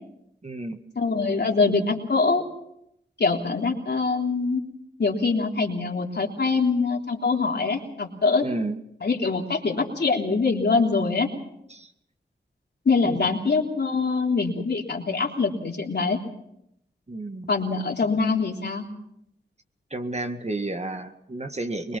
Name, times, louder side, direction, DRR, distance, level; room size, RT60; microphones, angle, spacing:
voice 1, 0.4-0.8 8.4-8.8 11.7-11.9 13.0-13.2 17.1-17.5 19.9-22.0, right 2 dB, 35° right, 6 dB, 1.9 m, -31 dB
voice 2, 0.9-2.4 3.2-4.6 5.0-8.5 9.0-11.3 12.8-16.2 17.5-18.8, left 4 dB, 60° left, 0 dB, 3.4 m, -24 dB
22.5 x 21.0 x 5.8 m, 0.79 s
cardioid pair, 55°, 20 cm